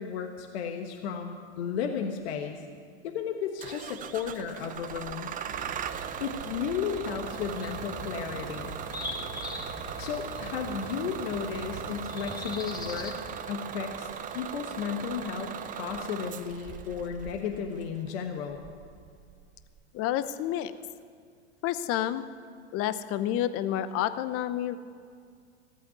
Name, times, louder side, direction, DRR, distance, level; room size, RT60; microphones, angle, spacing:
voice 1, 0.0-2.6 3.0-5.3 6.2-8.7 10.0-13.2 13.5-18.6, left 7 dB, 65° left, 4 dB, 1.3 m, -34 dB
Bus / Engine starting, 3.6-19.8, right 8 dB, 25° right, 0.6 m, -39 dB
sound 1, 5.5-13.4, right 3 dB, 50° right, 2.2 m, -46 dB
sound 2, 7.2-13.2, left 2 dB, 10° left, 1.4 m, -42 dB
voice 2, 19.9-20.7 21.6-22.2 22.7-24.8, left 12 dB, 40° left, 12 dB, 0.9 m, -29 dB
15.5 x 8.4 x 9.2 m, 2.2 s
hypercardioid pair, 110°, 34 cm